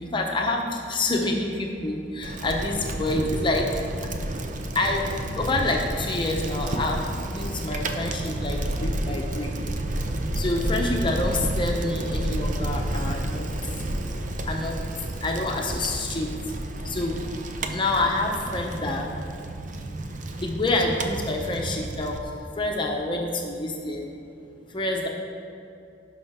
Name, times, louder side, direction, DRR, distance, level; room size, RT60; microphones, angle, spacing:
voice 1, 0.0-3.7 4.7-9.5 10.3-13.5 14.4-14.8 15.2-16.3 16.8-17.2 17.7-19.1 20.3-24.1 24.7-25.1, left 2 dB, 25° left, 0 dB, 0.8 m, -27 dB
Bicycle, 2.2-22.2, right 1 dB, 45° right, 0.6 m, -30 dB
17.0 x 5.7 x 3.6 m, 2.6 s
head